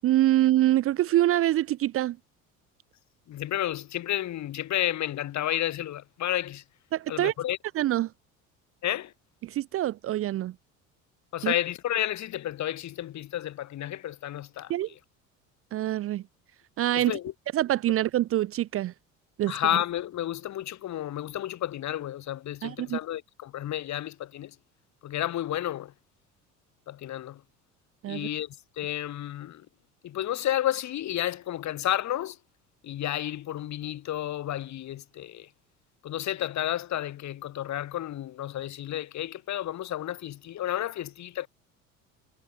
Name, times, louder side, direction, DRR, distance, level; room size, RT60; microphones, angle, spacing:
voice 1, 0.0-2.2 6.9-7.3 7.8-8.1 9.4-10.5 11.4-11.5 14.7-14.9 15.7-16.2 16.8-17.1 17.5-18.9 19.4-19.5 22.6-23.0 28.0-28.3, right 14 dB, 35° right, 0.7 m, -25 dB
voice 2, 3.3-6.6 7.1-7.6 8.8-9.1 11.3-15.0 16.9-17.3 19.5-24.6 25.0-25.9 26.9-27.4 28.1-29.7 30.0-32.4 32.8-35.5 36.0-41.5, left 12 dB, 40° left, 3.5 m, -31 dB
figure-of-eight pair, 60°, 41 cm